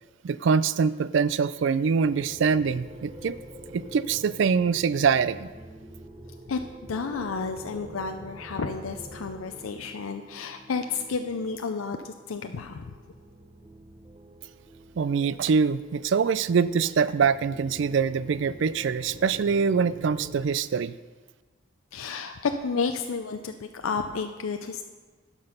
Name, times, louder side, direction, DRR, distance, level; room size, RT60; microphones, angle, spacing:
voice 1, 0.2-3.4 3.7-5.5 15.0-21.0, right 6 dB, 60° right, 16 dB, 0.3 m, -24 dB
sound 1, 2.0-20.4, right 1 dB, 30° right, 0.8 m, -46 dB
voice 2, 6.5-12.9 21.9-24.8, left 5 dB, 85° left, 6 dB, 0.5 m, -31 dB
11.5 x 6.1 x 5.5 m, 1.3 s
head